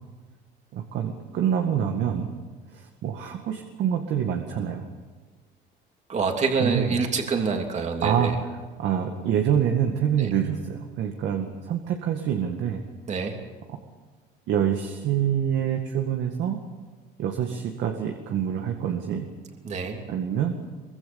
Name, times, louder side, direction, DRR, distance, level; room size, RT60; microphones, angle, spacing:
voice 1, 0.7-2.4 2.7-4.9 6.6-7.0 8.0-8.5 8.8-12.8 14.5-16.6 17.2-19.3 20.1-20.6, right 9 dB, 70° right, 3 dB, 2.0 m, -26 dB
voice 2, 6.1-8.3 10.2-10.3 13.1-13.4 19.6-20.0, right 4 dB, 35° right, 3 dB, 3.0 m, -26 dB
24.0 x 23.5 x 7.2 m, 1.4 s
cardioid pair, 145°, 19 cm